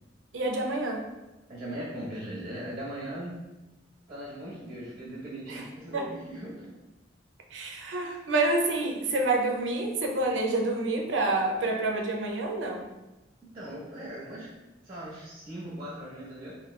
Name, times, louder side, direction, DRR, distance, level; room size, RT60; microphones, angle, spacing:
voice 1, 0.3-1.1 5.5-5.6 5.9-6.1 7.5-12.8, right 2 dB, 75° right, 1 dB, 0.5 m, -28 dB
voice 2, 1.5-3.3 4.1-6.7 13.5-14.5 14.8-16.5, right 1 dB, 30° right, -6 dB, 0.7 m, -39 dB
2.9 x 2.6 x 3.1 m, 1.0 s
head